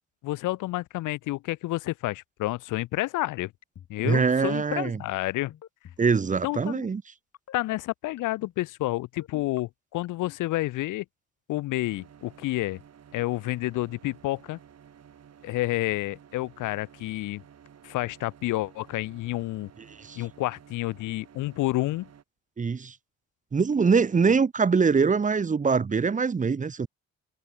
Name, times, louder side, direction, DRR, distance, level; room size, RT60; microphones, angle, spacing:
voice 1, 0.2-3.5 3.9-5.5 6.4-6.9 7.5-11.0 11.5-12.8 13.1-14.6 15.4-17.4 17.8-19.7 20.2-22.1, left 17 dB, 85° left, 0.8 m, -29 dB
sound 1, 3.6-4.1 4.4-4.7 5.5-6.0 6.3-6.6 7.3-7.8 8.2-8.5 9.2-9.6 10.0-10.4, left 10 dB, 60° left, 2.2 m, -47 dB
voice 2, 4.0-5.0 6.0-7.0 20.0-20.2 22.6-22.9 23.5-26.9, right 5 dB, 25° right, 0.9 m, -23 dB
sound 2, 11.8-22.2, right 8 dB, 55° right, 7.3 m, -53 dB
cardioid pair, 90°, 30 cm